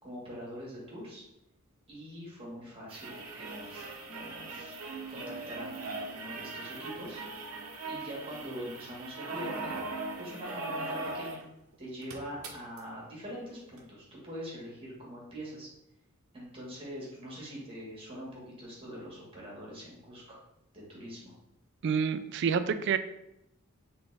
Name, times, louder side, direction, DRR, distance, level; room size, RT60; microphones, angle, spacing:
voice 1, 0.0-1.2 1.9-4.8 5.1-7.2 7.9-9.8 10.2-11.4 11.8-15.7 16.3-20.4 20.7-21.3, equal, 25° right, -5 dB, 1.6 m, -43 dB
sound 1, 2.9-11.4 11.7-11.8 12.0-12.8 13.8-13.9, right 3 dB, 90° right, 0.8 m, -39 dB
voice 2, 21.8-23.0, right 6 dB, 55° right, 12 dB, 0.3 m, -28 dB
4.2 x 3.4 x 3.3 m, 0.83 s
head